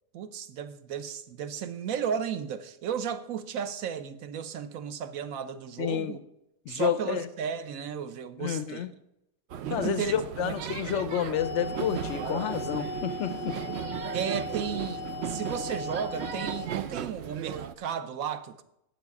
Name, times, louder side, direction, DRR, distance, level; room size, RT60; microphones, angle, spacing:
voice 1, 0.1-6.2 6.7-8.9 9.6-10.1 10.5-10.7 14.1-18.6, right 7 dB, 65° right, 1.1 m, -34 dB
voice 2, 5.8-6.2 6.7-7.3 8.4-8.9 9.7-13.6, left 9 dB, 70° left, 0.7 m, -30 dB
sound 1, 9.5-17.7, right 9 dB, 85° right, 0.5 m, -36 dB
sound 2, 11.3-16.7, left 5 dB, 90° left, 1.2 m, -39 dB
9.2 x 7.4 x 7.1 m
omnidirectional pair, 1.7 m